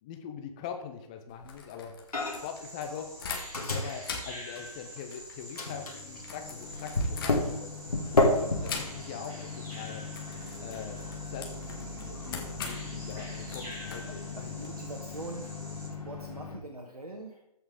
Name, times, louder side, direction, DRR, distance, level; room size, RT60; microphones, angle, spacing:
voice 1, 0.0-1.9 2.4-3.2 3.7-7.7 8.4-10.0 10.6-11.0 11.3-14.5, left 7 dB, 10° left, 6 dB, 0.4 m, -42 dB
sound 1, 1.3-3.7 4.0-7.8 8.6-9.3 9.6-9.8 10.1-14.7, left 5 dB, 35° left, 1.7 m, -42 dB
Microwave oven, 2.1-2.6 2.9-5.2 5.6-16.6, left 2 dB, 70° left, 2.4 m, -33 dB
Bird vocalization bird call bird song, 2.2-15.9, equal, 15° right, 2.8 m, -46 dB
voice 2, 14.0-15.6 16.0-17.4, right 2 dB, 70° right, 2 dB, 1.5 m, -43 dB
14.5 x 5.6 x 3.7 m, 0.83 s
figure-of-eight pair, 140°, 20 cm